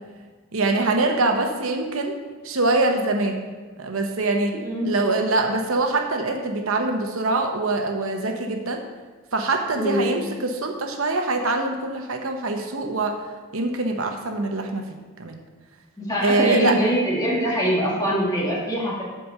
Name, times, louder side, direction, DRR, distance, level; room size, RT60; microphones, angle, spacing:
voice 1, 0.5-2.2 2.4-3.5 3.8-4.6 4.9-8.8 9.3-13.2 13.5-14.8 15.2-15.4 16.2-16.8, right 2 dB, 80° right, 4 dB, 0.9 m, -24 dB
voice 2, 4.6-4.9 9.8-10.1 16.0-19.0, equal, 20° left, -5 dB, 2.1 m, -23 dB
7.6 x 4.9 x 6.6 m, 1.4 s
head